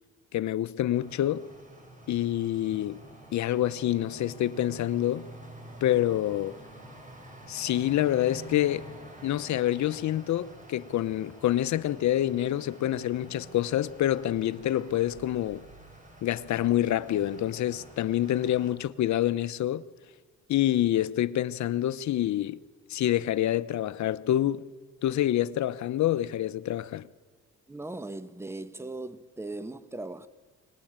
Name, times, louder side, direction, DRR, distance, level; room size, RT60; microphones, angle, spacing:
voice 1, 0.3-1.4 2.1-3.0 3.3-5.3 5.8-6.6 7.5-8.9 9.2-15.6 16.2-19.8 20.5-22.6 22.9-24.7 25.0-27.1, left 12 dB, 70° left, 0.9 m, -27 dB
sound 1, 0.9-18.7, right 1 dB, 25° right, 6.8 m, -48 dB
voice 2, 27.7-30.3, right 2 dB, 10° right, 1.2 m, -38 dB
24.0 x 19.0 x 8.9 m
cardioid pair, 90°, 30 cm